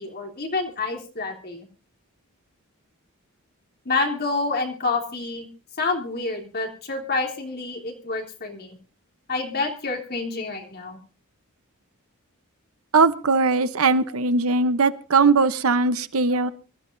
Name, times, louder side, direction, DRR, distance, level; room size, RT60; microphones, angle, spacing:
voice 1, 0.0-1.7 3.8-5.5 5.8-8.8 9.3-11.0 14.0-14.1 16.3-16.4, left 3 dB, 45° left, 1 dB, 3.2 m, -28 dB
voice 2, 12.9-16.5, right 4 dB, 70° right, 12 dB, 0.9 m, -20 dB
25.0 x 13.0 x 2.6 m, 0.33 s
head